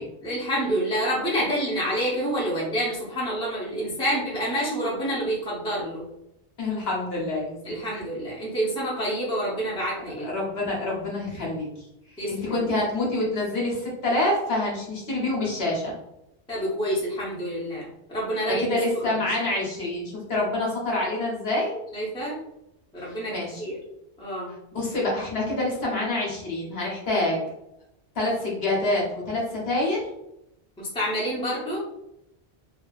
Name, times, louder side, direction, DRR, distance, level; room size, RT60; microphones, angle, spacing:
voice 1, 0.2-6.0 7.6-10.3 12.2-12.6 16.5-19.1 21.9-22.4 22.9-23.8 24.2-24.5 30.8-31.8, equal, 5° left, -6 dB, 0.6 m, -28 dB
voice 2, 6.6-7.8 10.2-11.9 12.3-15.9 18.6-21.7 23.3-23.6 24.7-27.4 28.1-30.0, left 2 dB, 65° left, -4 dB, 1.1 m, -27 dB
2.6 x 2.4 x 2.3 m, 0.84 s
omnidirectional pair, 1.1 m